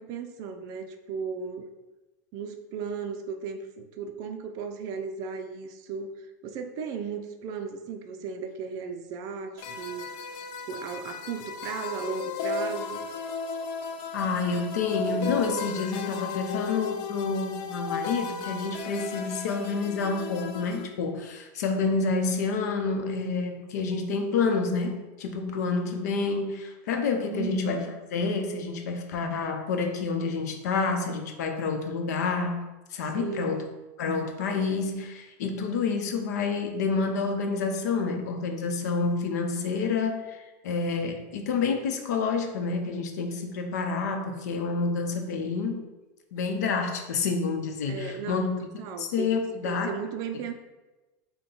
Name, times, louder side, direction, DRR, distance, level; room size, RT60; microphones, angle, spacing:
voice 1, 0.0-1.7 2.3-10.1 10.7-13.1 27.2-27.8 33.0-33.6 47.9-49.3 49.6-50.5, right 6 dB, 45° right, 7 dB, 0.5 m, -36 dB
sound 1, 9.6-20.9, left 4 dB, 50° left, 0.4 m, -35 dB
voice 2, 14.1-32.6 32.9-33.6 34.0-45.8 46.3-49.9, left 4 dB, 90° left, 4 dB, 0.7 m, -28 dB
5.7 x 2.2 x 3.8 m, 1.1 s
supercardioid pair, 150°, 9 cm